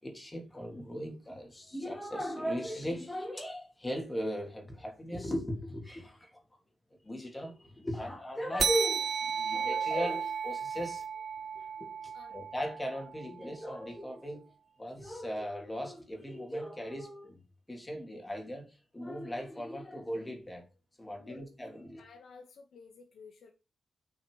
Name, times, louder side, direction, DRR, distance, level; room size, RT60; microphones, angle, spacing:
voice 1, 0.0-6.4 7.0-11.0 11.5-14.4 14.8-17.4 17.7-20.6 21.0-22.0, equal, 10° left, 2 dB, 3.3 m, -38 dB
sound 1, 8.6-13.5, right 7 dB, 45° right, 0.5 m, -34 dB
voice 2, 22.0-23.5, left 4 dB, 90° left, 2 dB, 1.7 m, -53 dB
9.1 x 6.5 x 5.0 m, 0.30 s
wide cardioid pair, 165°, 0 cm